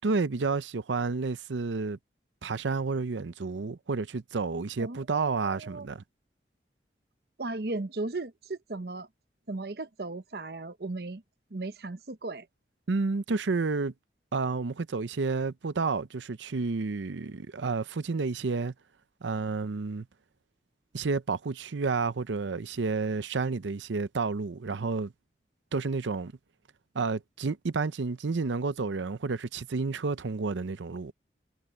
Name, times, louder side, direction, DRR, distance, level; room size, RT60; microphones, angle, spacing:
voice 1, 0.0-2.0 2.4-6.0 12.9-13.9 14.3-18.7 19.2-20.1 20.9-25.1 25.7-26.3 26.9-31.1, right 4 dB, 90° right, 0.6 m, -30 dB
voice 2, 4.8-5.9 7.4-9.1 9.5-11.2 11.5-12.5, right 2 dB, 60° right, 0.8 m, -36 dB
head